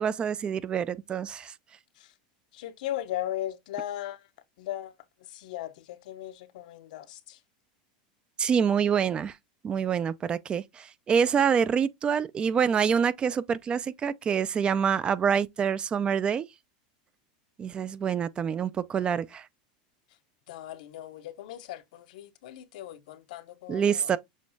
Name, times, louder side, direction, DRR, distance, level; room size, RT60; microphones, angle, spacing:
voice 1, 0.0-1.5 8.4-9.4 9.6-16.4 17.6-19.5 23.7-24.2, right 7 dB, 20° right, 0.3 m, -26 dB
voice 2, 2.5-4.3 4.6-4.9 5.2-7.4 20.5-24.1, left 13 dB, 75° left, 0.6 m, -37 dB
6.3 x 3.0 x 2.6 m
supercardioid pair, 135°, 4 cm